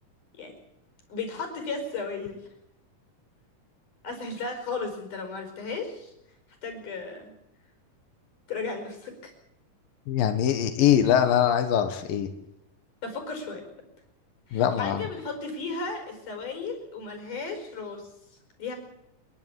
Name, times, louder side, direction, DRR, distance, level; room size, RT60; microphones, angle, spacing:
voice 1, 1.1-2.4 4.0-6.1 6.6-7.3 8.5-9.3 13.0-13.6 14.5-18.1 18.6-18.8, left 4 dB, 65° left, 5 dB, 6.6 m, -35 dB
voice 2, 10.1-12.3 14.5-15.0, left 9 dB, 85° left, 8 dB, 3.2 m, -22 dB
29.5 x 11.0 x 8.3 m, 0.82 s
omnidirectional pair, 3.9 m